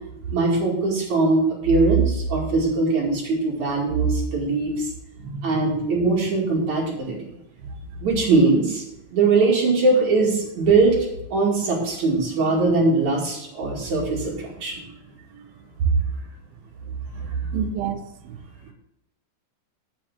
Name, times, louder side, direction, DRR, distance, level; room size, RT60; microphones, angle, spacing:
voice 1, 0.3-4.9 5.4-7.2 8.0-8.8 9.1-11.0 11.3-14.8 15.8-15.9 17.1-17.2, right 3 dB, 50° right, -3 dB, 3.2 m, -21 dB
voice 2, 5.2-5.7 7.6-7.9 17.5-18.4 18.6-18.7, right 6 dB, 75° right, 5 dB, 2.4 m, -31 dB
9.6 x 8.9 x 3.6 m, 0.88 s
omnidirectional pair, 4.9 m